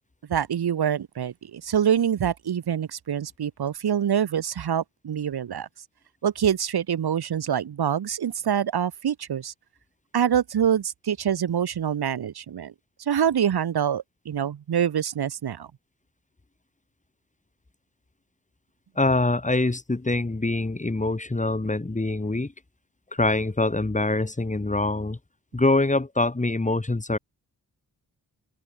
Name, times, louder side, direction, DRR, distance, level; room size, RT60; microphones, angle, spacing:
voice 1, 0.3-5.7 6.2-9.5 10.1-12.7 13.0-15.7, right 9 dB, 80° right, 2.4 m, -25 dB
voice 2, 19.0-22.5 23.1-25.2 25.5-27.2, left 2 dB, 20° left, 5.8 m, -24 dB
open air
wide cardioid pair, 125°, 38 cm